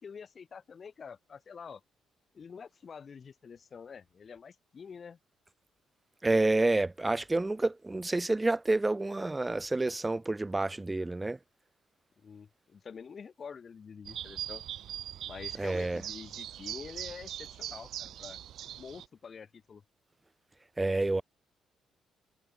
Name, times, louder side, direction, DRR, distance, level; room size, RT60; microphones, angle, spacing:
voice 1, 0.0-1.8 2.3-5.2 12.2-14.6 15.3-18.4 18.8-19.8, left 6 dB, 45° left, 5.2 m, -47 dB
voice 2, 6.2-11.4 15.6-16.0 20.8-21.2, right 2 dB, 15° right, 0.3 m, -29 dB
sound 1, 14.0-19.0, right 11 dB, 75° right, 3.1 m, -41 dB
cardioid pair, 90°, 0 cm